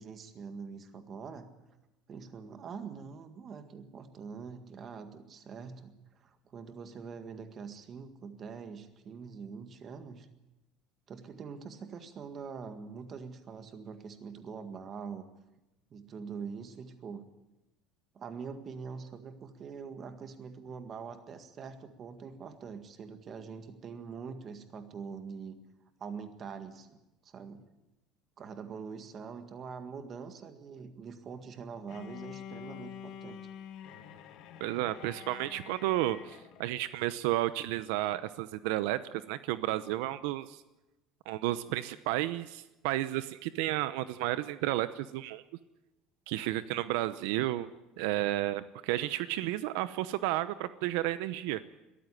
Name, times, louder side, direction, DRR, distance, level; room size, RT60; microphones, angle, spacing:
voice 1, 0.0-1.5 2.1-10.3 11.1-15.3 15.9-17.3 18.1-25.6 26.0-27.6 28.4-33.4, right 6 dB, 25° right, 9 dB, 1.8 m, -44 dB
Bowed string instrument, 31.9-36.8, left 9 dB, 45° left, 2.0 m, -47 dB
voice 2, 34.6-40.6 41.3-45.4 46.3-47.7 48.0-51.6, right 15 dB, 75° right, 14 dB, 0.8 m, -32 dB
21.5 x 14.0 x 9.9 m, 0.97 s
cardioid pair, 175°, 0 cm